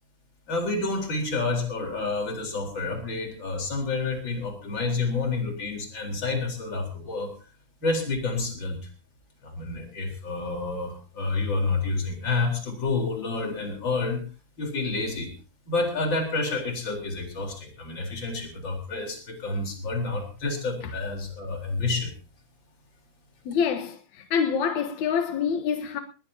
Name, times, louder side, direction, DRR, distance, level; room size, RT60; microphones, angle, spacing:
voice 1, 0.5-7.3 7.8-8.8 9.4-14.2 14.6-15.3 15.7-22.1, left 3 dB, 25° left, 4.1 m, -29 dB
voice 2, 23.4-26.0, left 7 dB, 80° left, 1.6 m, -26 dB
20.5 x 18.0 x 2.8 m
omnidirectional pair, 5.4 m